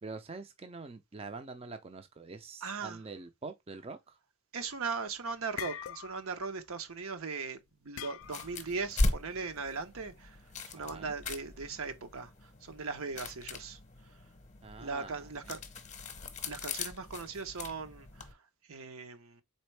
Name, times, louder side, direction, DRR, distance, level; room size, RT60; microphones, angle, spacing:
voice 1, 0.0-4.2 10.8-11.1 14.6-15.6, right 3 dB, 25° right, 0.5 m, -45 dB
voice 2, 2.6-3.0 4.5-13.8 14.8-15.6 16.4-18.4 18.7-19.4, right 4 dB, 75° right, 0.8 m, -39 dB
sound 1, 4.7-5.0 5.3-6.4 6.7-6.9 8.0-8.7, left 10 dB, 65° left, 0.4 m, -43 dB
sound 2, 8.2-18.3, left 2 dB, 35° left, 0.8 m, -39 dB
4.3 x 3.5 x 3.2 m
head